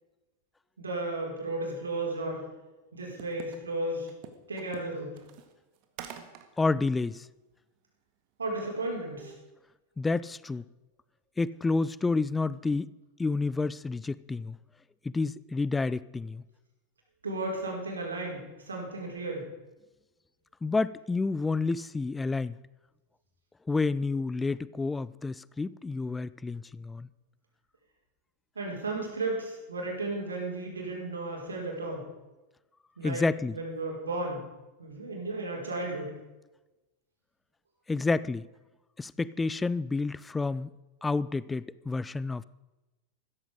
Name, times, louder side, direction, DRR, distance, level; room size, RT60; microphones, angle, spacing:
voice 1, 0.8-2.4 2.9-4.1 4.5-5.1 8.4-9.3 17.2-19.4 28.5-32.0 33.0-33.2 33.5-34.4 34.8-36.1, right 2 dB, 75° right, -1 dB, 4.6 m, -34 dB
sound 1, 3.2-3.6 4.1-6.5 6.9-7.0 8.6-8.8 9.2-9.4, right 10 dB, 45° right, 1.7 m, -45 dB
voice 2, 6.6-7.3 10.0-10.6 11.4-12.9 13.2-14.6 15.0-16.4 20.6-22.6 23.7-27.1 33.0-33.6 37.9-38.5 39.0-40.7 41.0-42.4, left 3 dB, 10° left, 19 dB, 0.4 m, -29 dB
15.5 x 14.0 x 5.1 m, 1.1 s
figure-of-eight pair, 90°, 0 cm